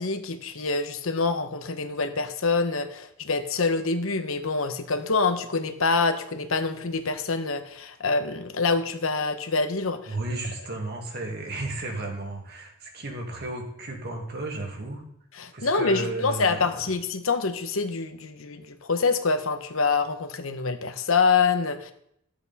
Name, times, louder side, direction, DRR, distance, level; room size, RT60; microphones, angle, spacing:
voice 1, 0.0-10.2 15.4-21.9, left 4 dB, 70° left, 9 dB, 1.0 m, -26 dB
voice 2, 10.1-15.0 15.5-16.8, right 2 dB, 50° right, 1 dB, 2.1 m, -34 dB
12.5 x 7.9 x 4.1 m, 0.74 s
head